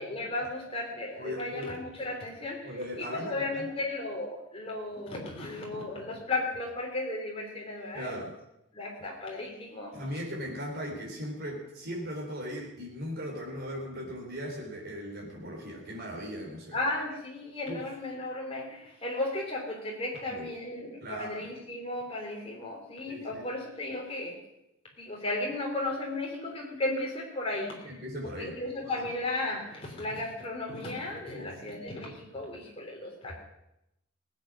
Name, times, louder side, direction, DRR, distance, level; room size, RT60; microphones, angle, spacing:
voice 1, 0.0-8.2 8.7-9.9 16.7-24.4 25.0-28.0 28.4-33.4, left 2 dB, 25° left, -1 dB, 3.5 m, -35 dB
voice 2, 1.2-1.7 2.6-3.7 7.9-8.3 9.9-16.8 17.7-17.8 20.3-20.5 21.0-21.3 23.1-23.4 27.8-29.1 31.3-31.5, equal, 50° right, -1 dB, 4.1 m, -38 dB
19.0 x 8.5 x 6.3 m, 0.84 s
head